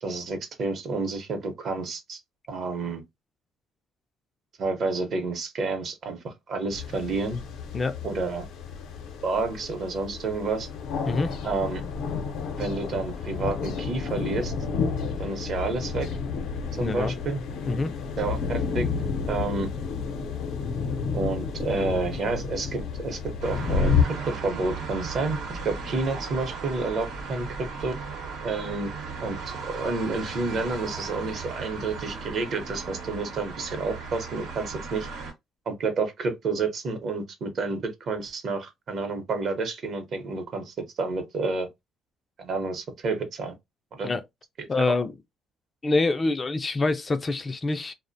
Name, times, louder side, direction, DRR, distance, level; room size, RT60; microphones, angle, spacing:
voice 1, 0.0-2.2 2.5-3.0 4.6-7.4 8.0-8.4 9.2-10.7 11.4-11.8 12.6-14.5 15.2-16.1 16.8-17.4 18.2-18.9 19.3-19.7 21.1-27.9 28.4-28.9 29.2-35.1 35.7-41.7 42.4-43.5 43.9-44.1 44.7-44.9, right 3 dB, 55° right, 0.7 m, -30 dB
sound 1, 6.7-24.0, left 5 dB, 85° left, 0.6 m, -30 dB
voice 2, 16.8-17.1 17.6-17.9 44.0-44.2 44.7-45.1 45.8-47.9, left 3 dB, 30° left, 0.3 m, -25 dB
sound 2, 23.4-35.3, right 4 dB, 85° right, 0.8 m, -36 dB
2.4 x 2.1 x 2.5 m
cardioid pair, 100°, 0 cm